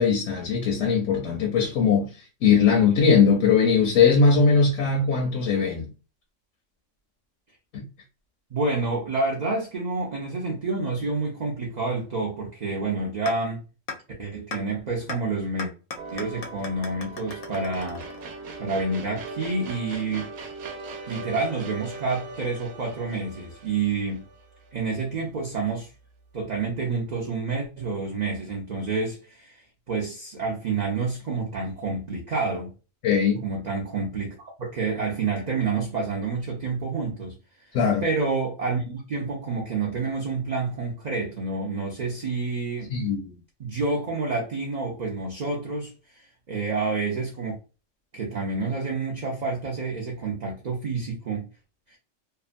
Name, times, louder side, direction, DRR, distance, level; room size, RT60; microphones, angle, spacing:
voice 1, 0.0-2.1 2.4-5.9 7.7-7.8 33.0-33.4 37.7-38.0 42.9-43.3, left 5 dB, 75° left, 1.0 m, -20 dB
voice 2, 8.5-13.6 14.2-15.7 16.1-18.0 18.6-20.3 21.1-24.2 24.7-25.9 26.3-32.7 33.4-37.4 38.0-42.9 43.6-47.6 48.1-51.5 51.9-52.0, right 3 dB, 50° right, 0.5 m, -28 dB
sound 1, 13.3-13.4 13.9-14.0 14.5-14.6 15.1-15.2 15.6-18.5, left 4 dB, 60° left, 0.7 m, -36 dB
sound 2, 16.0-25.2, right 3 dB, 90° right, 1.0 m, -40 dB
2.8 x 2.2 x 2.4 m
omnidirectional pair, 1.3 m